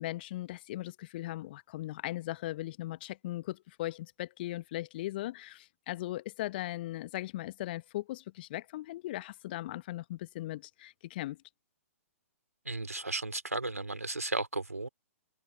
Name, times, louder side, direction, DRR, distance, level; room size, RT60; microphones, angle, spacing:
voice 1, 0.0-11.4, left 16 dB, 40° left, 1.3 m, -38 dB
voice 2, 12.6-14.9, right 2 dB, 80° right, 2.9 m, -34 dB
figure-of-eight pair, 120°, 8 cm